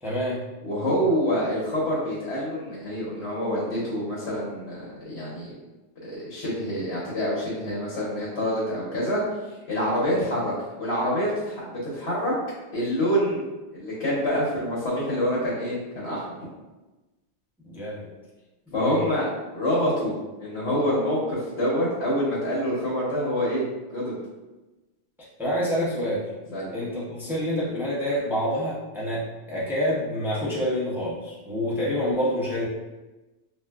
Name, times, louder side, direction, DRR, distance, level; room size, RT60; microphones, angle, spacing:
voice 1, 0.0-0.5 17.6-18.1 18.7-19.0 25.4-26.3 26.7-32.7, equal, 5° right, -8 dB, 0.5 m, -27 dB
voice 2, 0.6-5.5 6.0-9.2 9.7-12.3 12.7-13.5 13.7-16.2 18.7-23.6 23.9-24.2 26.5-26.7, equal, 80° left, -7 dB, 1.1 m, -26 dB
3.4 x 2.4 x 2.2 m, 1.1 s
omnidirectional pair, 1.1 m